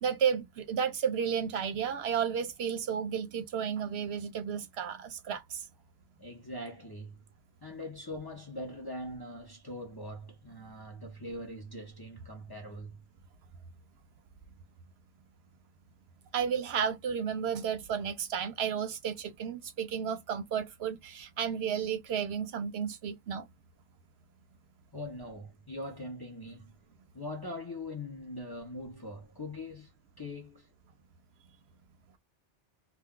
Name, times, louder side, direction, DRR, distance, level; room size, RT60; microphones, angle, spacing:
voice 1, 0.0-5.7 16.3-23.5, right 7 dB, 65° right, 0.8 m, -32 dB
voice 2, 6.2-7.2 7.6-13.0 24.9-26.7 27.1-29.9 30.2-30.7, left 1 dB, 25° left, 0.6 m, -42 dB
2.2 x 2.2 x 3.6 m
omnidirectional pair, 1.2 m